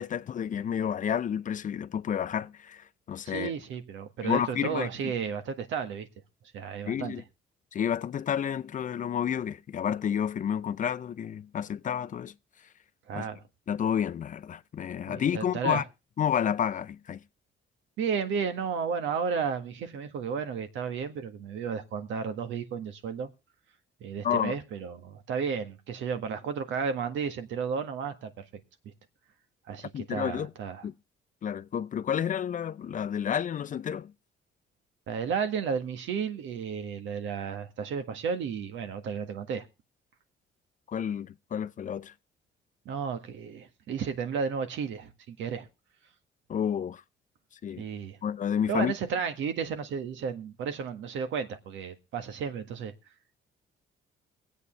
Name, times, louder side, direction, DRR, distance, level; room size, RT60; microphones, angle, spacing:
voice 1, 0.0-3.5 4.2-4.9 6.9-7.2 7.7-12.3 13.1-13.3 13.7-15.8 16.2-17.2 24.2-24.5 29.9-30.5 30.8-30.9 31.4-34.1 40.9-42.1 46.5-47.0 47.6-47.8 48.2-48.9, left 8 dB, 40° left, 0.5 m, -30 dB
voice 2, 3.2-6.1 6.5-7.1 13.1-13.4 15.1-15.8 18.0-23.3 24.0-28.5 29.7-30.9 35.1-39.7 42.9-45.7 47.8-48.2 48.7-52.9, right 6 dB, 80° right, 1.7 m, -33 dB
23.0 x 8.2 x 3.2 m
cardioid pair, 100°, 20 cm